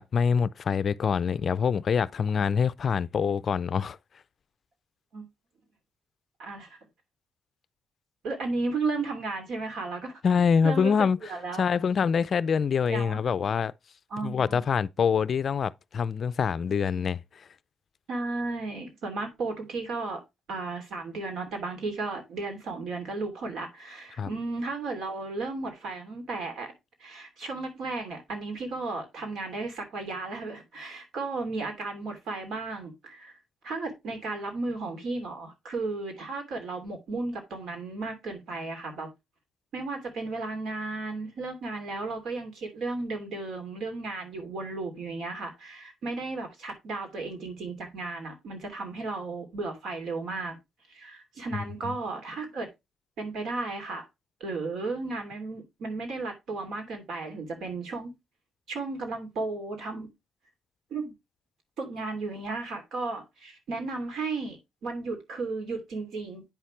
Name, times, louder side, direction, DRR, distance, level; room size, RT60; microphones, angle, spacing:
voice 1, 0.0-4.0 10.2-11.2 11.6-13.7 14.2-17.5 24.2-24.3 51.8-51.9, left 6 dB, 50° left, 0.4 m, -25 dB
voice 2, 6.4-6.8 8.2-10.2 10.6-11.6 12.8-13.2 14.1-14.6 18.1-20.2 20.5-26.7 27.0-33.4 33.6-39.1 39.7-50.6 50.9-52.7 53.2-54.1 54.4-58.1 58.7-60.1 60.9-61.1 61.8-66.4, right 3 dB, 70° right, 2.9 m, -34 dB
8.9 x 5.7 x 3.2 m
cardioid pair, 90°, 0 cm